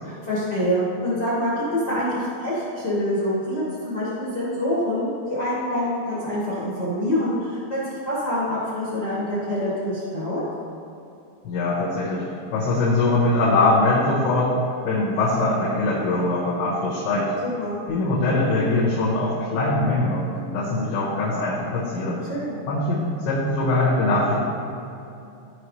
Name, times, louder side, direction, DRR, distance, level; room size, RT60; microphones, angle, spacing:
voice 1, 0.0-10.4 17.4-17.8 22.3-22.6, equal, 60° left, -10 dB, 1.0 m, -26 dB
voice 2, 11.5-14.5 14.9-17.3 17.9-22.2 22.7-24.4, left 2 dB, 80° left, -8 dB, 3.6 m, -22 dB
15.0 x 5.3 x 3.2 m, 2.7 s
omnidirectional pair, 5.2 m